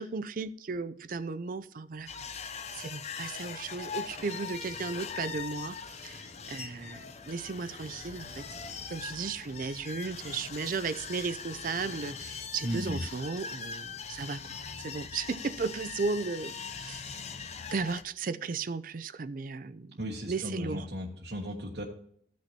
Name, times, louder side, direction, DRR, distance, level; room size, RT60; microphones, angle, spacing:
voice 1, 0.0-2.1 2.7-14.4 14.8-17.3 17.7-20.0 20.3-20.9, right 4 dB, 50° right, 13 dB, 0.5 m, -35 dB
sound 1, 2.1-18.0, left 6 dB, 40° left, 0.6 m, -41 dB
voice 2, 12.6-13.0 20.0-21.8, equal, 65° right, -2 dB, 1.4 m, -35 dB
15.0 x 6.2 x 2.8 m, 0.66 s
head